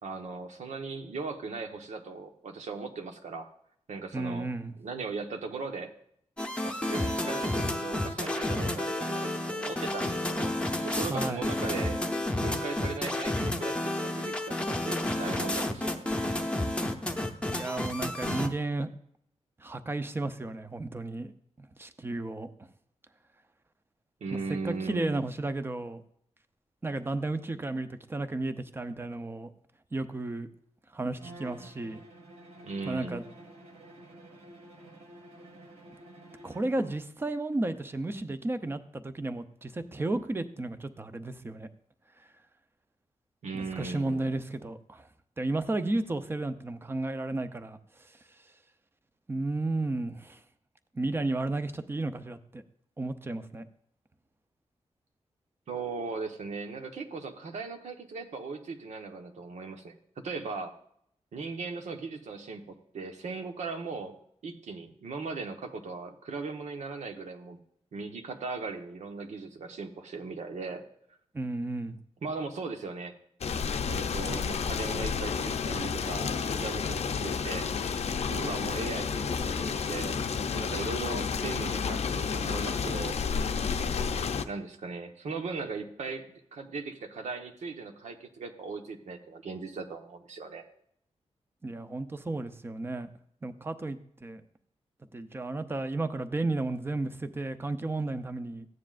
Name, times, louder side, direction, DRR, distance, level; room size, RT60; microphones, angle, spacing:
voice 1, 0.0-3.5 3.9-4.5 4.8-5.9 6.6-10.5 10.8-12.0 12.4-16.1 24.2-25.2 32.6-33.3 43.4-44.2 55.7-60.0 60.2-60.7 61.3-64.2 64.4-67.6 67.9-70.8 72.2-73.2 73.9-77.7 78.3-80.2 80.5-83.6 84.5-90.6, right 4 dB, 85° right, 5 dB, 1.3 m, -38 dB
voice 2, 4.1-4.7 11.1-11.5 17.5-18.9 19.6-21.3 21.6-22.5 24.5-26.0 26.8-29.5 29.9-30.5 30.9-32.0 32.8-33.2 36.4-41.7 42.2-42.3 43.5-45.1 45.4-48.4 49.3-50.4 50.9-52.6 53.0-53.7 71.3-72.0 91.6-93.1 93.4-94.4 95.1-98.7, right 2 dB, 20° right, 10 dB, 0.6 m, -33 dB
sound 1, 6.4-18.5, left 1 dB, 10° left, 0.8 m, -31 dB
Bowed string instrument, 31.2-37.0, right 1 dB, 65° right, 1.8 m, -50 dB
sound 2, 73.4-84.4, left 6 dB, 65° left, 0.6 m, -31 dB
14.5 x 9.6 x 2.5 m, 0.70 s
wide cardioid pair, 175°, 12 cm